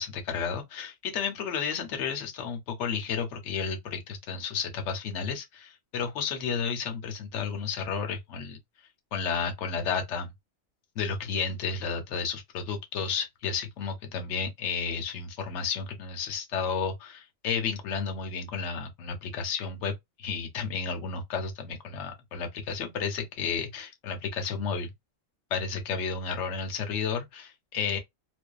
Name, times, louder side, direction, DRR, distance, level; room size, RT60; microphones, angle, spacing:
voice 1, 0.0-8.6 9.1-10.3 11.0-24.9 25.5-28.0, left 6 dB, 65° left, 0.9 m, -32 dB
2.5 x 2.2 x 2.2 m
omnidirectional pair, 1.4 m